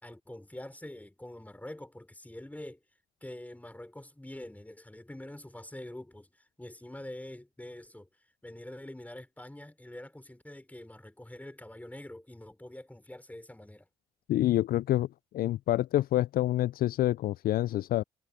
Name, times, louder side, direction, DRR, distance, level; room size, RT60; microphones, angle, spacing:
voice 1, 0.0-2.8 3.2-8.1 8.4-13.9, left 1 dB, 10° left, 4.5 m, -45 dB
voice 2, 14.3-15.1 15.3-18.0, left 14 dB, 65° left, 0.5 m, -27 dB
hypercardioid pair, 45°, 17 cm